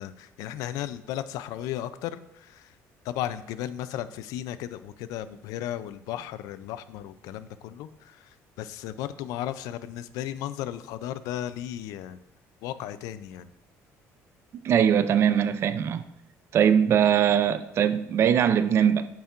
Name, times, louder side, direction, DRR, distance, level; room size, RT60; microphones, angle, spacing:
voice 1, 0.0-2.7 3.0-12.2 12.6-13.5, left 12 dB, 85° left, 0.4 m, -35 dB
voice 2, 14.6-16.0 16.5-19.1, right 8 dB, 45° right, 0.4 m, -21 dB
8.8 x 5.6 x 2.5 m
cardioid pair, 130°, 6 cm